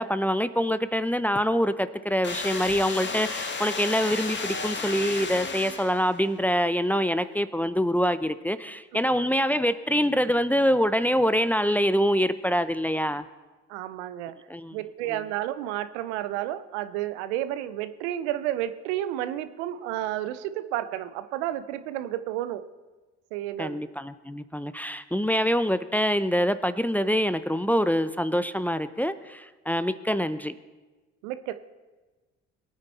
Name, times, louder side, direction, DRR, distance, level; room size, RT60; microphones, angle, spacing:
voice 1, 0.0-13.2 14.5-14.7 15.1-15.2 23.6-30.5, equal, 5° left, 14 dB, 0.7 m, -25 dB
sound 1, 2.2-6.3, left 4 dB, 35° left, 1.8 m, -33 dB
voice 2, 13.7-14.4 14.7-22.6 23.3-23.8 31.2-31.5, right 13 dB, 80° right, 12 dB, 0.8 m, -31 dB
22.5 x 9.1 x 4.2 m, 1.2 s
hypercardioid pair, 60°, 33 cm